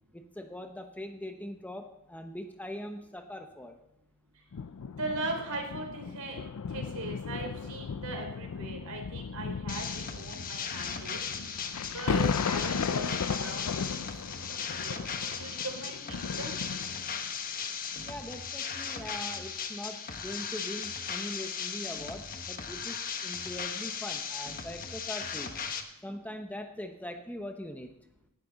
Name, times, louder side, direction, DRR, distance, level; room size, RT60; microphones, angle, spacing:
voice 1, 0.1-3.8 18.1-23.0 23.2-25.6 26.0-28.0, left 1 dB, 5° left, 5 dB, 0.9 m, -41 dB
sound 1, 4.5-17.3 18.0-18.1, left 6 dB, 90° left, 0.5 m, -36 dB
voice 2, 5.0-6.4 6.7-11.2 11.9-13.7 14.4-15.0 15.4-16.6, right 2 dB, 80° right, 3 dB, 3.6 m, -39 dB
sound 2, 9.7-25.8, left 6 dB, 40° left, 1.2 m, -37 dB
17.5 x 12.0 x 4.0 m, 0.83 s
head